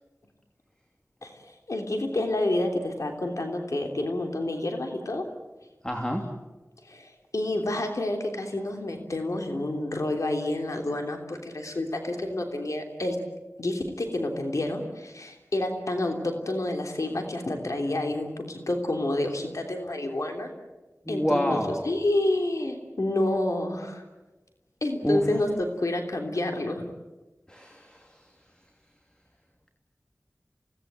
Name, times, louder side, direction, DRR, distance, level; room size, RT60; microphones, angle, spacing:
voice 1, 1.2-5.2 6.8-13.2 13.6-20.5 21.1-24.0 24.8-26.8, left 1 dB, 80° left, 3 dB, 3.2 m, -29 dB
voice 2, 5.8-6.2 21.1-21.9 25.0-25.2 27.5-27.9, equal, 15° left, 3 dB, 2.9 m, -27 dB
29.0 x 18.5 x 9.0 m, 1.1 s
wide cardioid pair, 55°, 5 cm